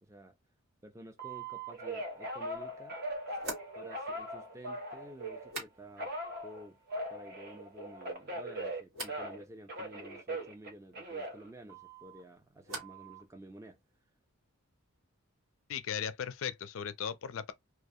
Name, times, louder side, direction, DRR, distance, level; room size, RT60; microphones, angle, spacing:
voice 1, 0.0-0.3 0.8-3.0 3.7-6.1 6.4-6.8 7.1-13.8, right 1 dB, 15° right, 0.4 m, -52 dB
Telephone, 1.2-5.5 6.0-9.4 9.7-12.2 12.7-13.2, right 1 dB, 45° right, 0.8 m, -40 dB
sound 1, 2.1-2.2 3.4-6.2 6.5-7.1 7.4-8.1 8.9-9.3 11.7-13.1 13.4-14.0, right 1 dB, 80° right, 1.4 m, -47 dB
voice 2, 15.7-17.5, left 8 dB, 65° left, 0.4 m, -37 dB
2.3 x 2.3 x 2.6 m
head